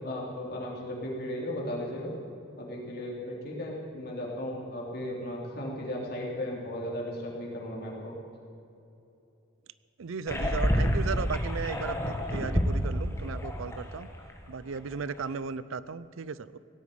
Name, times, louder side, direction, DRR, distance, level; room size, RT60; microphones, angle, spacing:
voice 1, 0.0-2.1 2.6-8.2, left 1 dB, 50° left, -3 dB, 3.5 m, -36 dB
voice 2, 10.0-14.1 14.5-16.6, right 5 dB, 75° right, 17 dB, 0.5 m, -36 dB
sound 1, 10.3-14.3 14.6-14.8 15.2-15.3, equal, 15° left, 1.4 m, -29 dB
18.0 x 8.3 x 9.4 m, 2.8 s
head